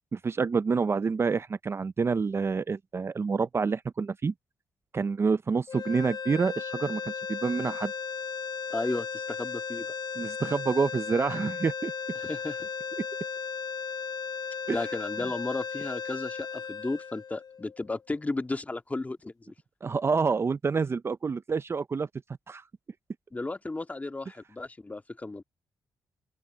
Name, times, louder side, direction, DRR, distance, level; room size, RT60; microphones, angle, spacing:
voice 1, 0.1-4.3 4.9-7.0 7.3-7.9 10.2-11.9 14.7-14.8 19.8-22.1 22.5-22.6, right 5 dB, 35° right, 0.6 m, -27 dB
sound 1, 5.7-17.9, left 6 dB, 60° left, 1.1 m, -36 dB
voice 2, 8.7-9.9 12.2-12.7 14.7-19.5 23.3-25.4, left 2 dB, 20° left, 1.9 m, -34 dB
open air
cardioid pair, 70°, 7 cm